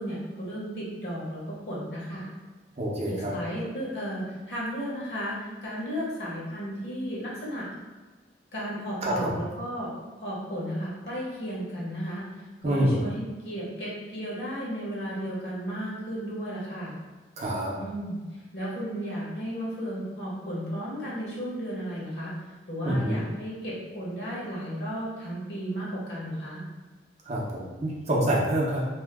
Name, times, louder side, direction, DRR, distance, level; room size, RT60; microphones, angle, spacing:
voice 1, 0.0-2.3 3.0-7.7 8.5-9.9 10.2-17.0 17.8-18.2 18.5-22.3 22.7-26.6, equal, 65° left, -6 dB, 1.2 m, -34 dB
voice 2, 2.8-3.4 9.0-9.3 12.6-13.0 17.4-17.7 22.9-23.1 27.3-28.9, right 1 dB, 40° right, -4 dB, 0.6 m, -26 dB
2.8 x 2.2 x 3.4 m, 1.3 s
head